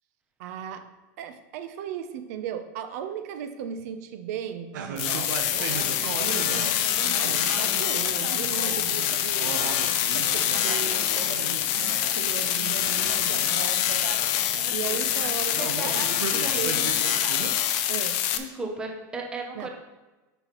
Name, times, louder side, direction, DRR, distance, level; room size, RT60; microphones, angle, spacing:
voice 1, 0.4-0.9 1.2-4.8 6.0-11.6 12.0-14.1 14.7-16.8 17.9-18.2 19.5-19.7, right 9 dB, 55° right, 9 dB, 0.5 m, -37 dB
sound 1, 4.7-17.5, right 6 dB, 80° right, 0.9 m, -37 dB
sound 2, 5.0-18.4, left 11 dB, 40° left, 0.5 m, -25 dB
voice 2, 15.6-16.9 18.3-19.7, right 2 dB, 10° right, 1 dB, 0.7 m, -36 dB
9.0 x 5.7 x 3.0 m, 1.2 s
supercardioid pair, 175°, 10 cm